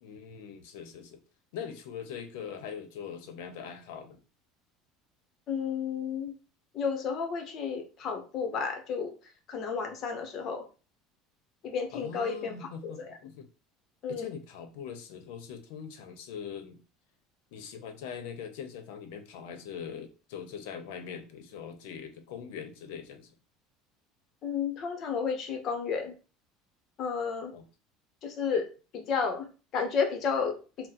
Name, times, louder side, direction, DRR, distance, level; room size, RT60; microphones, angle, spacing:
voice 1, 0.0-1.2 1.5-4.2 11.9-13.5 14.1-16.8 17.5-23.3 27.5-27.6, left 7 dB, 80° left, 8 dB, 0.8 m, -42 dB
voice 2, 5.5-6.3 6.7-9.1 9.5-10.6 11.6-12.5 12.8-13.1 14.0-14.3 24.4-26.2 27.0-27.5 28.2-30.9, left 6 dB, 40° left, 4 dB, 0.9 m, -32 dB
3.8 x 2.1 x 4.2 m, 0.35 s
cardioid pair, 145°, 0 cm